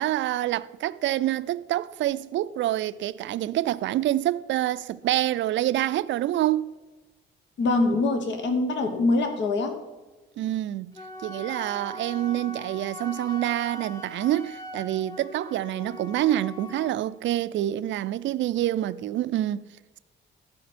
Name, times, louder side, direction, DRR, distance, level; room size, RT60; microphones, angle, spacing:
voice 1, 0.0-6.7 10.4-10.9 11.2-19.6, right 13 dB, 70° right, 0.4 m, -27 dB
voice 2, 7.6-9.8, left 2 dB, 65° left, 1.1 m, -24 dB
Wind instrument woodwind instrument, 10.9-17.0, left 1 dB, 15° left, 1.2 m, -41 dB
14.0 x 5.1 x 4.3 m
cardioid pair, 90°, 20 cm